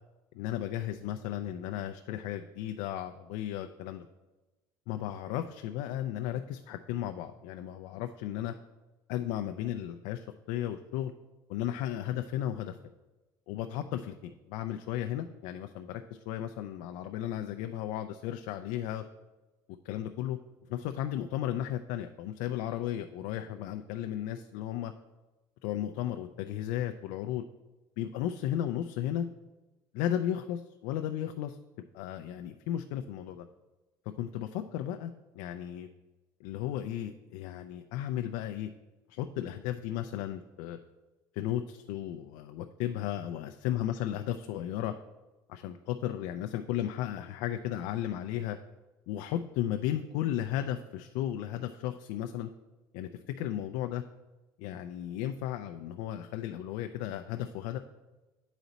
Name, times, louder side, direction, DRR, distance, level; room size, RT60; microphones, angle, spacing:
voice 1, 0.3-4.1 4.9-8.5 9.1-11.1 11.5-12.8 13.5-19.0 19.8-20.4 20.7-24.9 25.6-27.4 28.0-29.3 29.9-31.6 31.9-33.5 34.2-35.9 36.4-38.7 39.1-40.8 41.3-44.9 45.5-48.6 49.1-52.5 52.9-54.0 54.6-57.8, left 11 dB, 80° left, 7 dB, 0.4 m, -34 dB
9.2 x 4.0 x 4.0 m, 1.1 s
cardioid pair, 160°, 9 cm